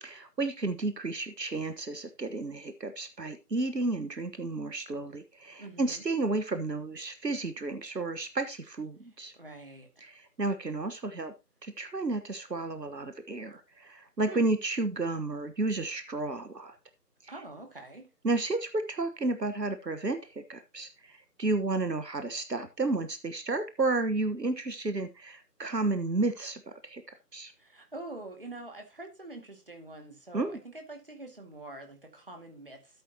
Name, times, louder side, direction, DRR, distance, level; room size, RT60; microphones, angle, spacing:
voice 1, 0.0-9.3 10.0-11.3 11.6-16.8 17.2-17.3 18.2-27.0 27.3-27.5 30.3-30.6, right 2 dB, 80° right, 9 dB, 1.4 m, -32 dB
voice 2, 5.6-6.0 9.3-10.0 14.3-14.4 17.3-18.1 27.6-33.0, right 2 dB, 35° right, 3 dB, 2.2 m, -45 dB
13.0 x 8.0 x 2.9 m, 0.26 s
figure-of-eight pair, 170°, 49 cm